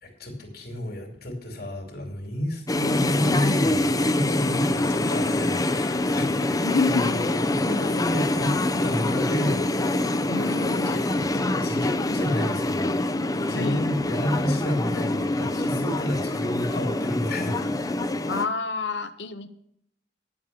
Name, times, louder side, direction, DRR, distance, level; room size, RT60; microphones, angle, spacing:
voice 1, 0.0-6.6 6.8-9.6 10.9-13.0 13.4-17.8, left 1 dB, 60° left, 2 dB, 2.8 m, -31 dB
sound 1, 2.7-18.5, left 2 dB, 20° left, 0.6 m, -25 dB
voice 2, 6.6-7.2 10.3-11.1 13.5-13.9 18.3-19.5, left 3 dB, 75° left, 9 dB, 1.0 m, -28 dB
10.0 x 7.7 x 6.9 m, 0.70 s
head